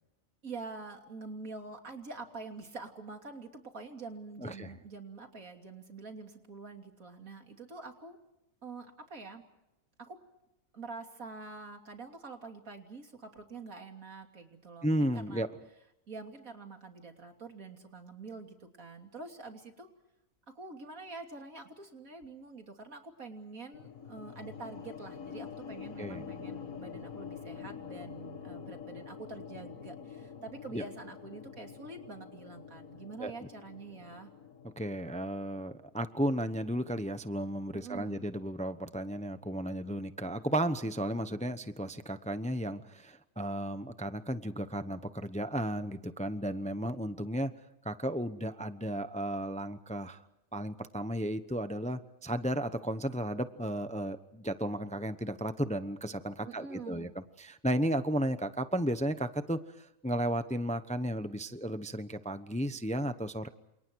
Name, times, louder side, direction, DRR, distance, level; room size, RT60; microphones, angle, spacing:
voice 1, 0.4-8.2 8.6-9.4 10.0-10.2 10.7-15.5 16.1-19.9 20.6-34.3 37.7-38.3 56.4-57.1, right 3 dB, 80° right, 4 dB, 3.5 m, -46 dB
voice 2, 14.8-15.5 26.0-26.3 30.7-30.8 33.2-33.3 34.8-47.5 47.8-50.2 50.5-63.5, right 1 dB, 5° left, 11 dB, 0.8 m, -34 dB
sound 1, 23.7-36.0, left 7 dB, 75° left, 1.8 m, -46 dB
29.0 x 28.5 x 4.7 m, 0.88 s
omnidirectional pair, 1.4 m